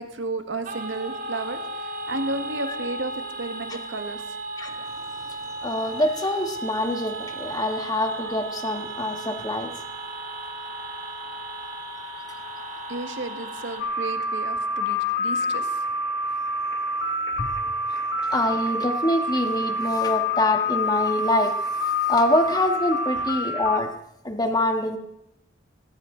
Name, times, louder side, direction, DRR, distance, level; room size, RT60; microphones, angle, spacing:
voice 1, 0.0-4.2 12.9-15.7 23.1-23.2, right 3 dB, 85° right, 7 dB, 1.6 m, -33 dB
sound 1, 0.6-13.8, right 2 dB, 50° right, 2.7 m, -35 dB
voice 2, 5.6-9.7 17.4-17.5 18.3-21.5 22.1-23.9 24.2-25.0, left 1 dB, 20° left, 5 dB, 1.7 m, -25 dB
sound 2, 13.8-23.8, left 2 dB, 65° left, 1.5 m, -27 dB
18.5 x 17.5 x 3.9 m, 0.78 s
head